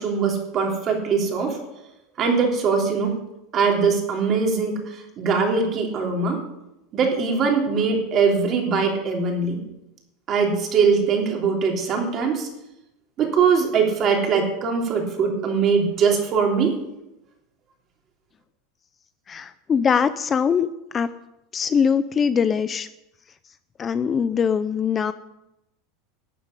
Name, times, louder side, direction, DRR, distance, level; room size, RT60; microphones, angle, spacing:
voice 1, 0.0-1.6 2.2-3.1 3.5-4.8 5.2-6.4 6.9-9.6 10.3-12.5 13.2-16.7, right 5 dB, 35° right, 1 dB, 3.4 m, -21 dB
voice 2, 19.3-21.1 21.5-22.9 23.8-25.1, left 6 dB, 25° left, 13 dB, 0.5 m, -22 dB
12.0 x 7.2 x 9.8 m, 0.89 s
supercardioid pair, 140°, 0 cm